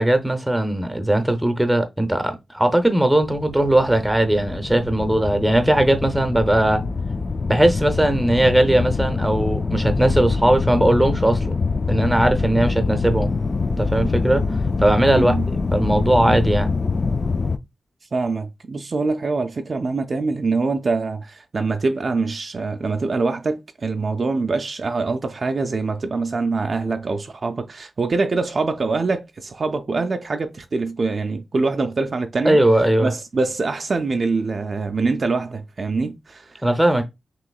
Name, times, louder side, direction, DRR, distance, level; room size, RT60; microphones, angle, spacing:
voice 1, 0.0-6.8 7.5-11.5 11.9-13.3 13.8-14.4 14.8-16.7 32.4-33.1 36.6-37.1, right 1 dB, 5° right, 0.7 m, -19 dB
sound 1, 3.2-17.6, left 4 dB, 40° left, 0.3 m, -24 dB
voice 2, 15.1-15.5 18.1-32.6 33.0-36.5, right 3 dB, 45° right, 0.4 m, -24 dB
5.8 x 3.0 x 2.3 m
wide cardioid pair, 110°, 0 cm